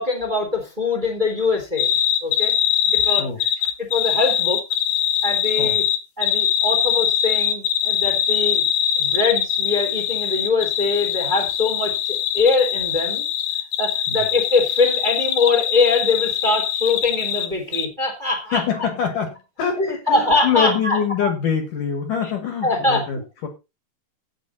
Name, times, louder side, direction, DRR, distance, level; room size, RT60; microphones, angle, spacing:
voice 1, 0.0-1.9 2.2-2.5 2.9-3.3 3.9-4.6 5.2-5.8 6.2-8.6 9.0-13.2 13.8-18.6 19.8-21.3 22.6-23.0, left 3 dB, 10° right, 3 dB, 2.8 m, -22 dB
sound 1, 1.8-17.5 17.7-17.9, left 10 dB, 80° left, 3.3 m, -22 dB
voice 2, 18.5-23.5, left 7 dB, 55° left, 6 dB, 3.0 m, -24 dB
16.5 x 6.8 x 4.1 m, 0.27 s
omnidirectional pair, 5.0 m